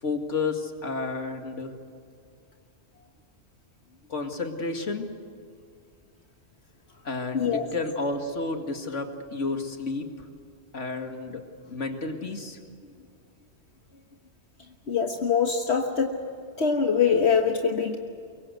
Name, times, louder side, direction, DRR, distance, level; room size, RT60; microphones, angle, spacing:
voice 1, 0.0-1.8 4.1-5.1 7.0-10.1 10.7-11.4 11.7-12.6, left 3 dB, 85° left, 4 dB, 2.5 m, -31 dB
voice 2, 7.3-7.7 14.9-16.2 16.6-18.0, left 6 dB, 65° left, 3 dB, 1.6 m, -23 dB
24.5 x 22.5 x 8.1 m, 2.4 s
omnidirectional pair, 1.2 m